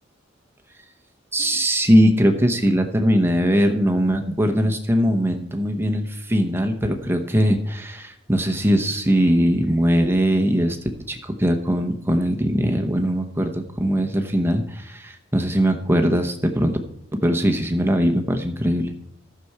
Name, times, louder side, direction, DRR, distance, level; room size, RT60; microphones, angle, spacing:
voice 1, 1.3-10.8 11.1-16.8 17.2-18.9, equal, 10° right, 5 dB, 0.9 m, -20 dB
13.0 x 6.9 x 4.7 m, 0.74 s
head